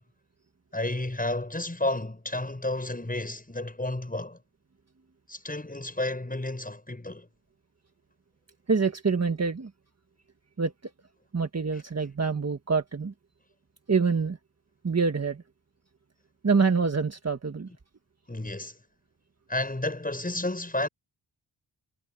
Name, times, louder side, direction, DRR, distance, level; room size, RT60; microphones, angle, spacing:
voice 1, 0.7-4.4 5.3-7.3 18.3-18.7 19.5-20.9, left 2 dB, 20° left, 7.0 m, -31 dB
voice 2, 8.7-9.7 10.6-10.7 11.3-13.1 13.9-14.4 14.8-15.4 16.4-17.7, right 5 dB, 35° right, 1.5 m, -26 dB
wide cardioid pair, 90°, 45 cm